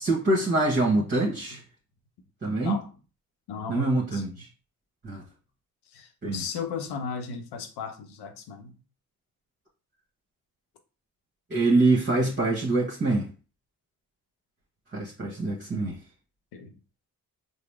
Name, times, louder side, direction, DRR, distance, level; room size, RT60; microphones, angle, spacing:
voice 1, 0.0-1.6 2.4-2.8 3.7-4.3 5.0-5.2 6.2-6.4 11.5-13.3 14.9-16.0, right 2 dB, 30° right, 1.1 m, -24 dB
voice 2, 0.8-1.6 2.6-2.9 3.5-4.4 5.9-8.8 16.5-16.8, left 5 dB, 85° left, 0.7 m, -37 dB
3.9 x 2.0 x 3.2 m
cardioid pair, 70°, 39 cm